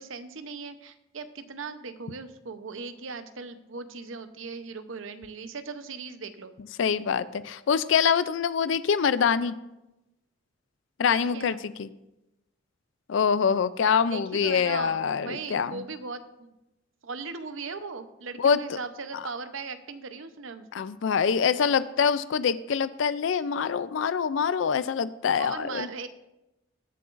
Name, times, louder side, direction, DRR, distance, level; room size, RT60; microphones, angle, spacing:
voice 1, 0.0-6.5 11.1-11.6 14.1-16.5 17.0-20.9 25.4-26.1, right 4 dB, 85° right, 10 dB, 0.8 m, -38 dB
voice 2, 6.8-9.5 11.0-11.9 13.1-15.8 18.4-18.8 20.7-25.9, left 6 dB, 75° left, 15 dB, 0.4 m, -25 dB
21.5 x 7.7 x 2.5 m, 0.96 s
head